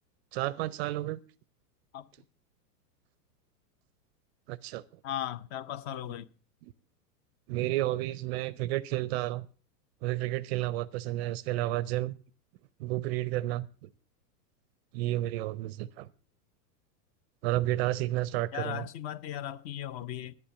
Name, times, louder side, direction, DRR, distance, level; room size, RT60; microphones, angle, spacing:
voice 1, 0.3-1.2 4.5-4.8 6.6-6.7 7.5-9.5 10.0-12.2 12.8-13.9 14.9-16.1 17.4-18.9, right 16 dB, 45° right, 0.5 m, -31 dB
voice 2, 5.0-6.3 18.5-20.3, left 11 dB, 35° left, 0.6 m, -37 dB
10.5 x 8.6 x 6.8 m
hypercardioid pair, 125°, 48 cm